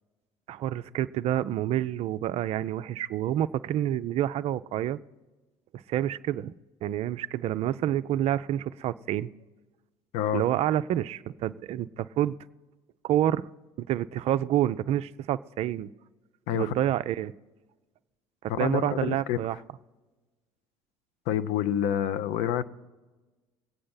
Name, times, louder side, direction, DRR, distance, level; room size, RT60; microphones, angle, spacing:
voice 1, 0.5-5.0 5.9-6.5 6.8-9.3 10.3-12.4 13.0-13.5 13.8-15.9 16.5-17.3 18.4-19.6, right 12 dB, 45° right, 0.4 m, -28 dB
voice 2, 18.5-19.4 21.3-22.7, left 10 dB, 55° left, 0.6 m, -28 dB
21.0 x 8.6 x 3.9 m
figure-of-eight pair, 60°, 15 cm